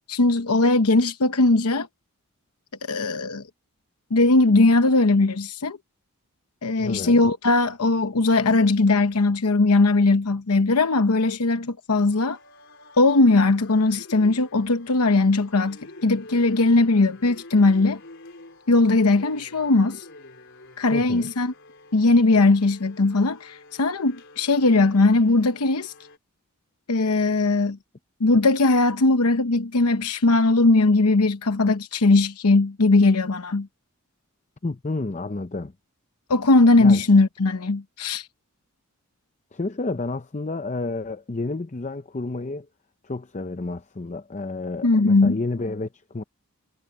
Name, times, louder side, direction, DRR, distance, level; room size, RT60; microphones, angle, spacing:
voice 1, 0.1-1.9 2.8-3.5 4.1-5.8 6.6-12.4 13.0-18.0 18.7-20.1 20.8-21.5 21.9-25.9 26.9-27.8 28.2-33.7 36.3-38.3 44.8-45.4, left 2 dB, 85° left, 0.9 m, -19 dB
voice 2, 6.8-7.2 20.9-21.3 34.6-35.7 36.8-37.0 39.5-42.7 43.0-46.2, left 3 dB, 30° left, 0.6 m, -30 dB
sound 1, 12.1-26.2, left 2 dB, 55° left, 4.4 m, -47 dB
head